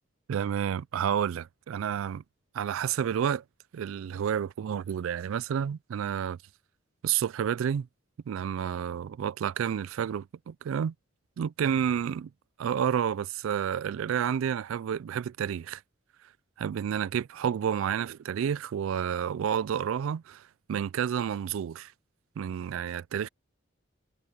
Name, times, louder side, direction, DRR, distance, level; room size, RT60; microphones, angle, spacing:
voice 1, 0.3-2.2 2.5-3.4 3.7-6.4 7.0-7.9 8.3-10.9 11.4-12.3 12.6-15.8 16.6-20.4 20.7-21.9 22.4-23.3, right 8 dB, 80° right, 0.3 m, -30 dB
head